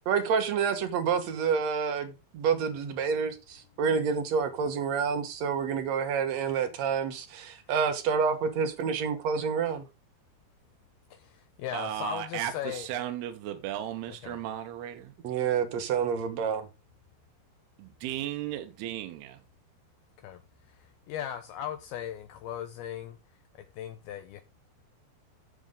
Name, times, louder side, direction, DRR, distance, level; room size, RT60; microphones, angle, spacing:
voice 1, 0.1-9.9 15.2-16.7, right 6 dB, 60° right, 1.9 m, -28 dB
voice 2, 11.1-13.0 14.2-14.4 20.2-20.4 20.7-23.2 23.7-24.4, left 10 dB, 75° left, 2.6 m, -38 dB
voice 3, 11.7-15.1 17.8-19.4, right 12 dB, 80° right, 2.8 m, -35 dB
11.5 x 7.7 x 3.7 m
omnidirectional pair, 4.7 m